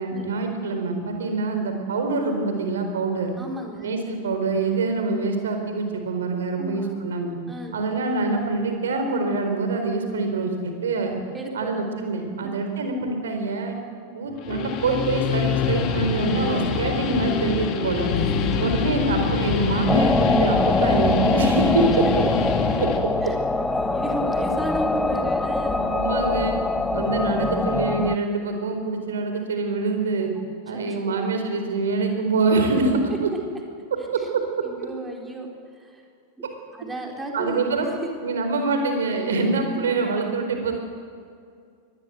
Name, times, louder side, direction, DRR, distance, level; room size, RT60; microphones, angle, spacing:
voice 1, 0.0-3.3 3.8-7.4 7.7-11.2 11.5-13.8 14.1-18.1 18.6-22.1 22.8-22.9 25.7-26.6 26.9-30.3 30.7-33.3 34.1-34.4 37.3-37.9 38.2-40.7, right 3 dB, 65° right, 5 dB, 4.3 m, -25 dB
voice 2, 3.4-3.9 6.6-7.0 7.5-7.7 11.3-11.7 12.1-12.5 18.2-18.6 19.0-19.1 23.2-23.4 23.7-25.8 30.7-31.2 34.2-34.3 34.6-36.0 36.7-37.6 38.2-38.4, right 2 dB, 10° right, 1 dB, 4.3 m, -34 dB
Guitar, 14.3-23.0, left 6 dB, 40° left, 2.7 m, -26 dB
sound 1, 18.1-27.9, left 6 dB, 60° left, 1.3 m, -35 dB
sound 2, 19.9-28.2, left 2 dB, 10° left, 0.9 m, -23 dB
23.5 x 20.0 x 8.0 m, 2.3 s
figure-of-eight pair, 90°, 0 cm